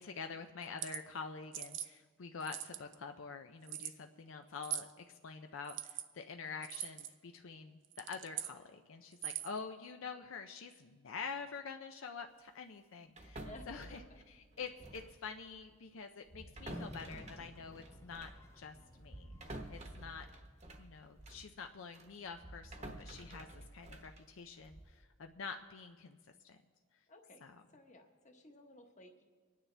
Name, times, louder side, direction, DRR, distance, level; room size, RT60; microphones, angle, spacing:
voice 1, 0.0-14.0 14.3-18.3 18.6-20.3 20.8-26.2 26.4-26.6 27.4-27.6, left 5 dB, 70° left, 6 dB, 0.5 m, -47 dB
sound 1, 0.6-1.0 1.5-1.9 2.4-2.9 3.7-3.9 4.6-4.9 5.6-6.1 6.6-7.1 7.8-8.5 9.1-9.6, right 12 dB, 60° right, 0.5 m, -41 dB
sound 2, 13.2-15.2 15.5-15.7 16.2-21.5 21.9-25.0, right 1 dB, 30° right, 1.0 m, -51 dB
voice 2, 13.4-14.2 27.1-27.4 27.7-29.2, left 1 dB, 35° left, 4 dB, 1.2 m, -55 dB
sound 3, 16.7-21.2, left 1 dB, 15° left, 0.5 m, -54 dB
25.0 x 9.5 x 3.3 m, 1.5 s
head